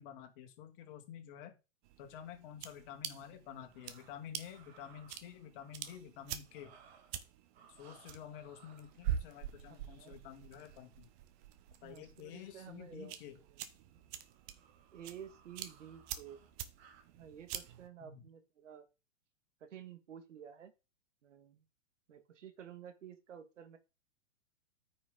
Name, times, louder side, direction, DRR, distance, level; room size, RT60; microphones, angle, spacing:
voice 1, 0.0-1.6 2.0-6.7 7.8-11.1 11.8-13.4 18.0-18.2, left 9 dB, 45° left, 6 dB, 2.3 m, -50 dB
sound 1, 1.8-17.9, right 10 dB, 40° right, 1.1 m, -46 dB
sound 2, 3.5-6.0 6.4-7.3 7.5-10.9 12.3-12.9 13.2-13.4 13.9-17.1, right 6 dB, 55° right, 2.3 m, -64 dB
voice 2, 9.7-10.2 11.8-13.2 13.5-13.6 13.9-14.0 14.9-16.4 17.1-18.9 19.6-20.7 21.2-21.6 22.1-23.8, right 9 dB, 75° right, 9 dB, 1.9 m, -52 dB
9.4 x 5.9 x 3.8 m, 0.28 s
hypercardioid pair, 130°, 38 cm